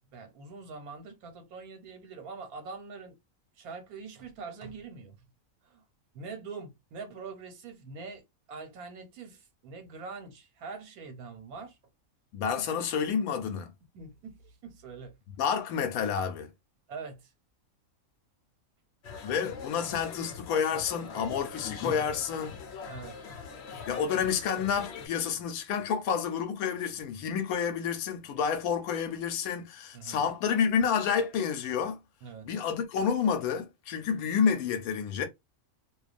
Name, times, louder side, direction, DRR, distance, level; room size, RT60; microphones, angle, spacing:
voice 1, 0.0-3.2 3.6-5.3 5.6-5.8 6.1-8.2 8.5-11.8 12.5-12.7 13.9-15.1 16.2-16.3 16.9-17.3 22.9-23.2 29.9-30.3 32.2-32.5, right 4 dB, 85° right, 1.3 m, -44 dB
voice 2, 12.3-13.7 15.4-16.5 19.2-22.6 23.9-32.0 32.4-35.3, left 7 dB, 90° left, 1.1 m, -29 dB
sound 1, 19.0-25.1, left 5 dB, 60° left, 0.8 m, -42 dB
2.5 x 2.3 x 2.4 m
omnidirectional pair, 1.5 m